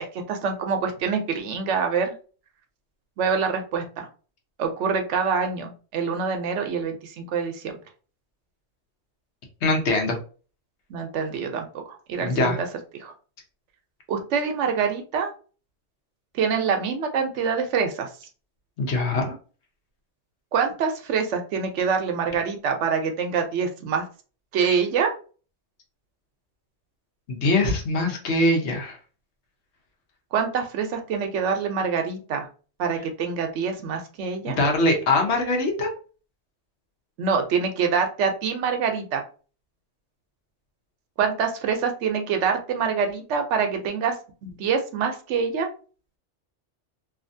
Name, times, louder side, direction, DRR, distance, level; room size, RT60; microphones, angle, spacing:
voice 1, 0.0-2.2 3.2-4.1 4.6-7.7 10.9-12.7 13.0-13.1 14.1-15.3 16.3-18.1 20.5-24.0 24.5-25.1 30.3-32.5 32.8-34.6 37.2-39.2 41.2-44.1 44.4-45.7, right 6 dB, 90° right, 5 dB, 0.9 m, -25 dB
voice 2, 9.6-10.2 12.2-12.6 18.8-19.3 27.3-29.0 34.4-35.9, left 2 dB, 75° left, 2 dB, 1.1 m, -22 dB
2.7 x 2.4 x 2.6 m, 0.38 s
omnidirectional pair, 1.2 m